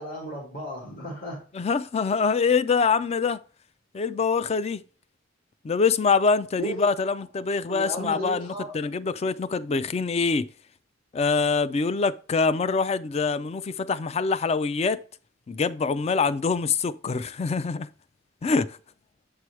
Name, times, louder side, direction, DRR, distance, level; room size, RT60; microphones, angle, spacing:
voice 1, 0.0-1.4 6.6-6.8 7.7-8.7, equal, 55° left, 2.7 m, -34 dB
voice 2, 1.5-3.4 3.9-4.8 5.6-10.5 11.1-15.0 15.5-17.9 18.4-18.8, left 4 dB, 35° left, 0.3 m, -24 dB
7.6 x 4.9 x 3.1 m
head